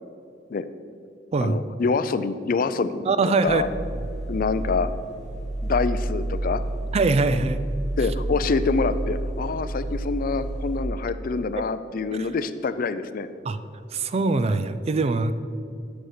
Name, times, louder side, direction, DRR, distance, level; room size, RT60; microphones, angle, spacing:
voice 1, 1.4-3.7 4.3-4.9 5.6-6.6 8.0-13.3, left 4 dB, 50° left, 13 dB, 0.4 m, -26 dB
voice 2, 3.1-3.6 6.9-7.6 12.2-12.3 13.4-13.6 13.9-15.3, right 3 dB, 35° right, 12 dB, 0.4 m, -22 dB
sound 1, 3.5-10.8, right 1 dB, ahead, 2.4 m, -30 dB
8.1 x 6.5 x 5.8 m, 2.4 s
head